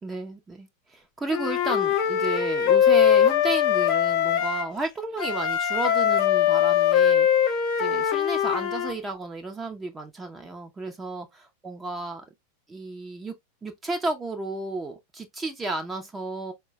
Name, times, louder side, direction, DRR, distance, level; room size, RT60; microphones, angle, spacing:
voice 1, 0.0-12.2 12.7-13.4 13.6-16.5, right 2 dB, 15° right, 0.7 m, -33 dB
Wind instrument woodwind instrument, 1.3-4.7 5.2-8.9, left 9 dB, 40° left, 0.6 m, -21 dB
4.6 x 2.2 x 3.0 m
figure-of-eight pair, 90°, 0 cm